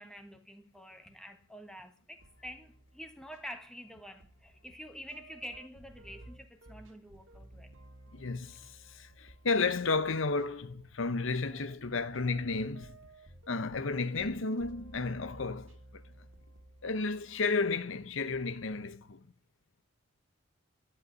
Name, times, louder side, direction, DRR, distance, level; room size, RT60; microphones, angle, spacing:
voice 1, 0.0-7.7 13.5-14.0, equal, 5° left, 1.5 m, -48 dB
sound 1, 2.2-18.9, right 1 dB, 70° right, 1.8 m, -56 dB
voice 2, 8.1-13.0 13.5-16.0 16.8-19.2, left 4 dB, 70° left, 0.8 m, -32 dB
12.0 x 8.2 x 9.5 m
head